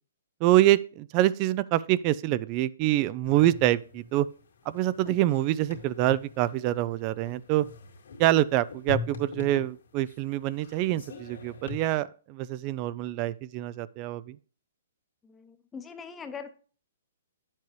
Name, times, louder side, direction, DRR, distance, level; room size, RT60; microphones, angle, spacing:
voice 1, 0.4-4.3 4.7-7.7 8.2-14.4, right 14 dB, 35° right, 0.3 m, -25 dB
sound 1, 3.2-11.8, left 5 dB, 80° left, 2.2 m, -42 dB
voice 2, 15.2-16.5, left 6 dB, 15° left, 0.8 m, -42 dB
9.3 x 7.3 x 3.1 m
hypercardioid pair, 145°, 0 cm